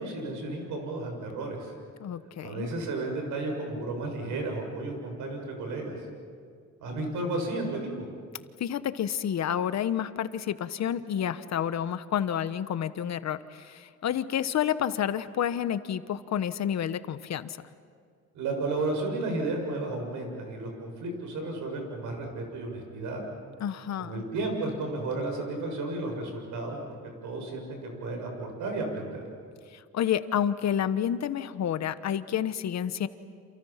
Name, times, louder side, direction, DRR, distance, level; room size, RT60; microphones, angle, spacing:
voice 1, 0.0-1.7 2.4-6.1 6.8-8.1 18.3-23.2 24.0-26.8 27.2-29.2, right 2 dB, 85° right, 2 dB, 6.9 m, -33 dB
voice 2, 2.0-2.7 8.6-17.6 23.6-24.2 29.7-33.1, left 9 dB, 60° left, 12 dB, 1.2 m, -29 dB
29.5 x 28.0 x 5.9 m, 2.1 s
cardioid pair, 90°, 30 cm